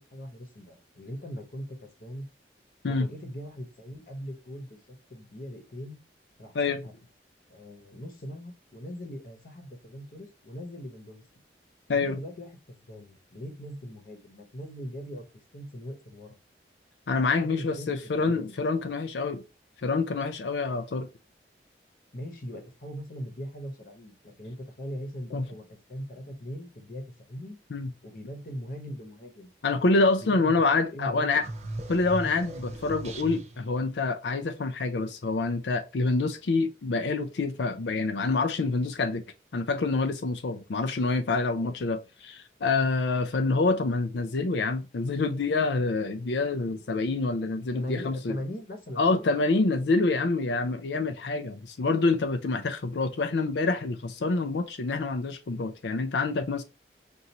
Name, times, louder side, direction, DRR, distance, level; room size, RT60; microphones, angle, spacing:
voice 1, 0.1-2.3 2.9-6.0 6.4-7.0 7.5-11.2 11.9-15.2 15.5-16.4 17.4-18.5 22.1-27.6 28.0-29.5 30.2-30.5 30.9-31.5 41.6-41.8 47.7-49.3, equal, 50° left, 1.0 m, -40 dB
voice 2, 17.1-19.4 19.8-21.1 25.3-25.5 27.7-27.9 29.6-31.4 31.9-39.2 39.5-48.4 49.0-56.6, left 3 dB, 80° left, 0.5 m, -27 dB
sound 1, 31.4-33.8, right 1 dB, 40° right, 0.8 m, -38 dB
5.3 x 2.6 x 2.9 m
head